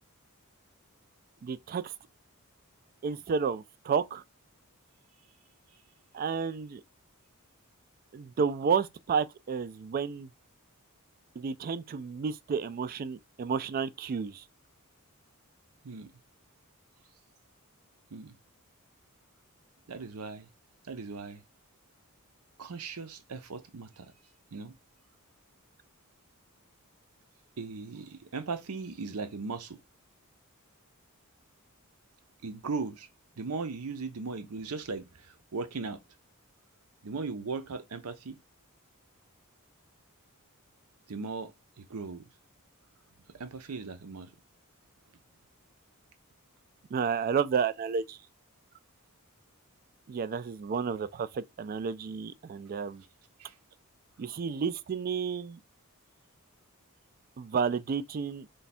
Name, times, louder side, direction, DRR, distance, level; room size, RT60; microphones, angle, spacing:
voice 1, 1.4-1.9 3.0-4.2 6.1-6.8 8.1-10.3 11.4-14.4 46.9-48.2 50.1-53.0 54.2-55.6 57.4-58.5, right 6 dB, 40° right, 0.3 m, -31 dB
voice 2, 19.9-20.5 20.9-21.4 22.6-24.1 24.5-24.7 27.6-29.8 32.4-33.1 33.4-36.0 37.0-38.4 41.1-41.5 41.8-42.2 43.3-44.3 53.4-53.5, right 4 dB, 70° right, 0.6 m, -38 dB
3.3 x 2.3 x 4.1 m
head